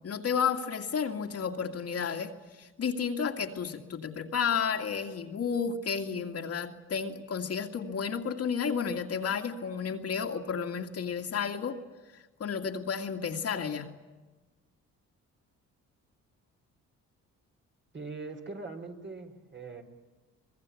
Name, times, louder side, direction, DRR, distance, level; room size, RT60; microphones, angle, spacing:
voice 1, 0.0-11.8 12.4-13.9, left 6 dB, 50° left, 4 dB, 2.2 m, -32 dB
voice 2, 17.9-19.8, right 3 dB, 40° right, 4 dB, 4.2 m, -41 dB
24.5 x 21.0 x 8.4 m, 1.3 s
cardioid pair, 90°, 30 cm